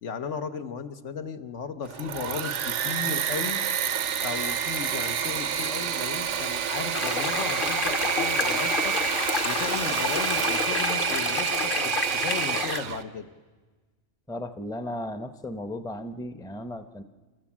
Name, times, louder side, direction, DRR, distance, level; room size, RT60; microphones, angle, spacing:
voice 1, 0.0-3.6 4.2-9.0 9.4-13.3, left 6 dB, 80° left, 8 dB, 1.3 m, -35 dB
Engine / Mechanisms, 1.8-13.0, right 8 dB, 85° right, 1.1 m, -28 dB
sound 1, 6.9-12.8, left 5 dB, 50° left, 1.1 m, -30 dB
voice 2, 14.3-17.0, left 1 dB, 5° left, 10 dB, 0.6 m, -35 dB
29.0 x 13.5 x 7.3 m, 1.3 s
omnidirectional pair, 1.2 m